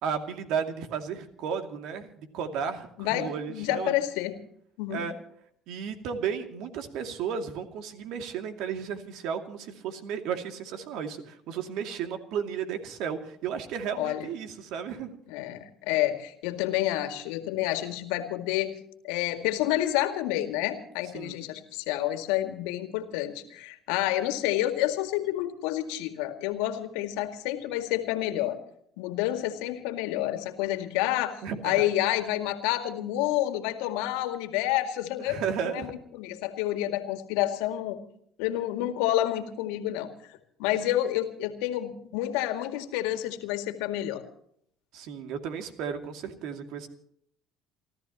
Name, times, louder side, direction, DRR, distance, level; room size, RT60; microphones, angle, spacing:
voice 1, 0.0-3.9 4.9-5.1 5.7-15.2 21.1-21.4 31.4-31.9 35.3-35.9 44.9-46.9, right 7 dB, 65° right, 6 dB, 2.5 m, -34 dB
voice 2, 3.0-4.4 4.8-5.0 14.0-14.3 15.3-18.7 19.0-28.6 29.0-31.3 31.6-38.0 38.4-44.2, left 14 dB, 75° left, 7 dB, 2.1 m, -29 dB
29.0 x 13.5 x 3.0 m, 0.67 s
hypercardioid pair, 65°, 0 cm